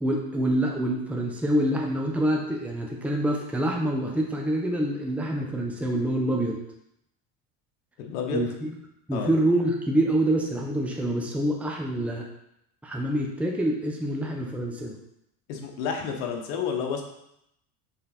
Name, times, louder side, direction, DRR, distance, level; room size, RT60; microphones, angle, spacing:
voice 1, 0.0-6.6 8.3-8.7 9.1-12.2 12.8-15.0, right 1 dB, 5° right, -1 dB, 0.9 m, -26 dB
voice 2, 8.0-8.4 9.1-9.3 15.5-17.0, left 6 dB, 80° left, 3 dB, 1.3 m, -30 dB
5.5 x 4.2 x 4.2 m, 0.79 s
supercardioid pair, 110°, 42 cm